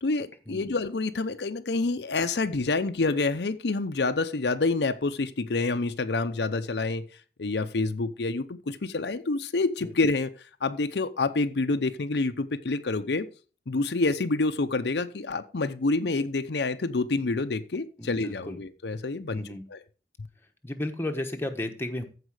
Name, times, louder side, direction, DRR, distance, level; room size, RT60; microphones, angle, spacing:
voice 1, 0.0-7.0 7.4-10.3 10.6-13.3 13.7-19.4 19.7-19.8, left 3 dB, 70° left, 0.7 m, -27 dB
voice 2, 18.0-18.6 19.3-19.6 20.6-22.1, left 1 dB, 15° left, 1.1 m, -33 dB
14.5 x 4.9 x 4.9 m
head